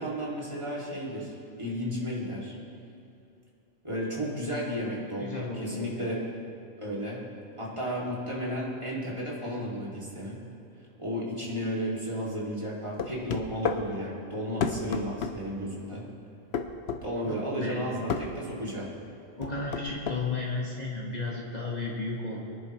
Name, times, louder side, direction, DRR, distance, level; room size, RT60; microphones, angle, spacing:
voice 1, 0.0-2.5 3.8-6.2 6.8-7.2 7.6-10.4 11.0-16.1 17.0-18.9, equal, 25° right, -6 dB, 2.7 m, -33 dB
voice 2, 5.2-6.2 17.3-18.0 19.4-22.4, left 3 dB, 35° left, -4 dB, 1.7 m, -34 dB
sound 1, 13.0-13.8 14.6-15.4 16.5-17.0 18.1-18.3 19.4-20.2, left 6 dB, 60° left, 1.0 m, -30 dB
23.0 x 10.5 x 3.2 m, 2.7 s
omnidirectional pair, 1.2 m